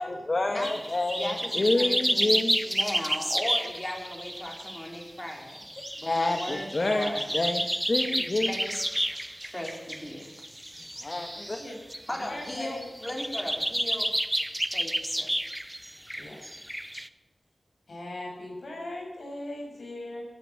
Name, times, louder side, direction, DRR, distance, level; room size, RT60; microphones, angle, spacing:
voice 1, 0.0-2.6 6.0-8.5 11.0-11.6, left 2 dB, 50° left, 4 dB, 1.5 m, -28 dB
sound 1, 0.6-12.0 12.4-12.5 12.8-17.1, equal, 5° right, 0.7 m, -31 dB
voice 2, 1.1-2.4 2.7-5.6 6.0-7.2 8.5-8.8 9.1-9.2 9.4-10.3 12.1-14.1 14.7-15.3, left 1 dB, 25° left, 0 dB, 4.4 m, -37 dB
voice 3, 11.1-11.8 12.3-12.8 16.2-16.4 17.9-20.2, left 1 dB, 80° left, -1 dB, 6.5 m, -39 dB
16.0 x 9.4 x 7.5 m, 1.1 s
wide cardioid pair, 70°, 0 cm